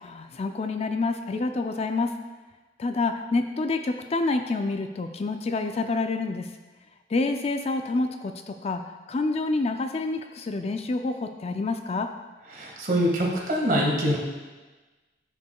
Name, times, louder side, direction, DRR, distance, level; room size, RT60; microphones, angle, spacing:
voice 1, 0.0-2.1 2.8-6.5 7.1-8.8 9.1-12.1, left 3 dB, 35° left, 6 dB, 0.4 m, -28 dB
voice 2, 12.5-14.2, equal, 50° right, -2 dB, 1.8 m, -24 dB
13.5 x 5.7 x 2.3 m, 1.3 s
head